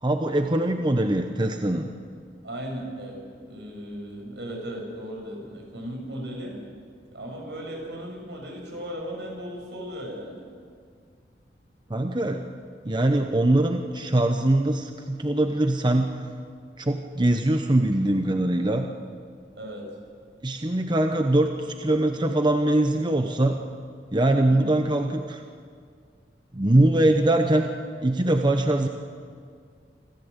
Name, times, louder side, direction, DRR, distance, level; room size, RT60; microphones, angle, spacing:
voice 1, 0.0-1.9 11.9-12.6 12.8-16.1 16.8-18.9 20.4-23.6 24.1-25.4 26.5-27.7 28.0-28.9, right 1 dB, 25° right, 5 dB, 0.9 m, -22 dB
voice 2, 2.4-6.6 7.1-10.5 19.5-19.8 24.3-24.6, equal, 80° right, 1 dB, 6.5 m, -36 dB
26.5 x 14.5 x 8.2 m, 2.1 s
head